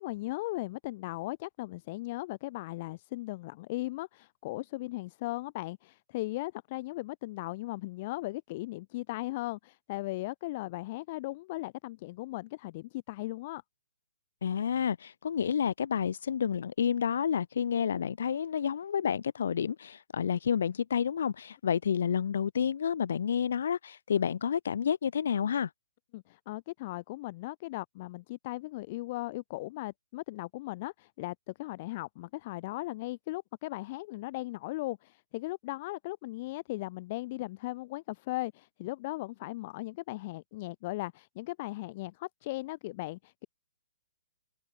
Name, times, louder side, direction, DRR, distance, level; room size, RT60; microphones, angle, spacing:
voice 1, 0.0-13.6 26.1-43.5, left 19 dB, 40° left, 6.5 m, -37 dB
voice 2, 14.4-25.7, left 8 dB, 65° left, 2.1 m, -30 dB
hypercardioid pair, 135°, 0 cm